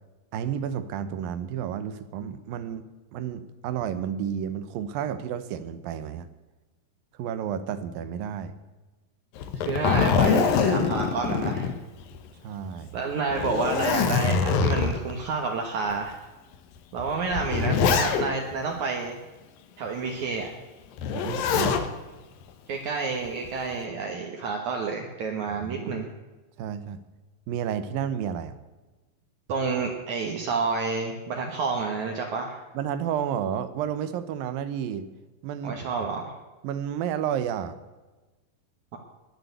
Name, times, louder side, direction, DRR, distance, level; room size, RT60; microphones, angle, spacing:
voice 1, 0.3-2.8 3.1-6.3 7.2-8.5 12.4-13.0 21.1-21.9 25.6-26.0 26.6-27.0 27.5-28.5 32.7-35.1 35.4-35.8 36.6-37.8, right 9 dB, 80° right, 12 dB, 2.7 m, -31 dB
Zipper (clothing), 9.4-12.3 12.7-12.8 13.3-15.1 15.9-16.0 17.0-18.5 21.0-21.9 23.3-23.7, left 6 dB, 80° left, 2.8 m, -24 dB
voice 2, 9.6-11.7 12.9-16.2 16.9-19.2 19.8-20.5 22.7-26.1 29.5-32.6 35.6-36.3, right 4 dB, 65° right, 1 dB, 2.5 m, -29 dB
20.5 x 6.9 x 8.0 m, 1.2 s
omnidirectional pair, 4.0 m